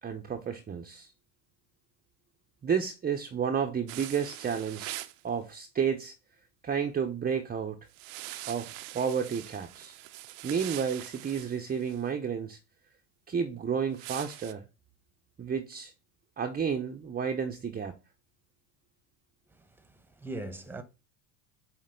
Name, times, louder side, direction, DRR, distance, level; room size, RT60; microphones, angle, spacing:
voice 1, 0.0-1.1 2.6-4.9 5.2-6.1 6.6-7.9 8.5-10.0 10.4-12.6 13.3-14.7 15.4-15.9 16.4-18.0, right 7 dB, 20° right, 0.7 m, -31 dB
sound 1, 3.9-5.2 7.9-12.0 13.9-14.5, right 16 dB, 65° right, 0.7 m, -43 dB
voice 2, 19.5-20.8, right 2 dB, 5° right, 1.1 m, -41 dB
8.7 x 2.9 x 3.9 m
hypercardioid pair, 80°, 44 cm